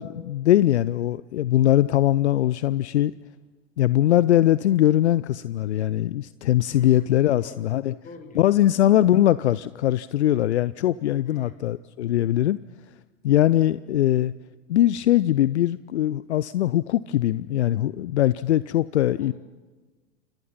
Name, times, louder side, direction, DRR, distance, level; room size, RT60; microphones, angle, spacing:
voice 1, 0.0-3.1 3.8-7.9 8.4-12.6 13.2-14.3 14.7-19.3, left 13 dB, 65° left, 18 dB, 0.7 m, -21 dB
voice 2, 6.7-7.1 7.4-7.7 8.0-8.4 11.2-11.6 19.1-19.3, left 3 dB, 20° left, 7 dB, 4.8 m, -44 dB
29.5 x 26.5 x 5.6 m, 1.3 s
figure-of-eight pair, 90°, 36 cm